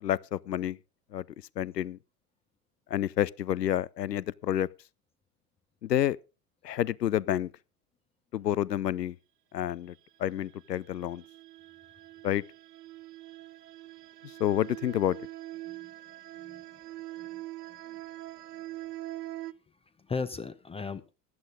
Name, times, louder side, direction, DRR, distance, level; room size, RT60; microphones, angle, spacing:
voice 1, 0.0-0.8 1.1-1.2 1.6-2.0 2.9-4.7 5.8-6.2 6.6-7.5 8.3-9.2 9.5-9.9 10.2-11.2 12.2-12.4 14.4-15.2, left 11 dB, 85° left, 0.6 m, -29 dB
sound 1, 10.5-19.5, right 15 dB, 75° right, 0.6 m, -43 dB
voice 2, 20.0-21.1, left 4 dB, 10° left, 0.7 m, -37 dB
15.0 x 10.5 x 3.7 m
figure-of-eight pair, 80°, 47 cm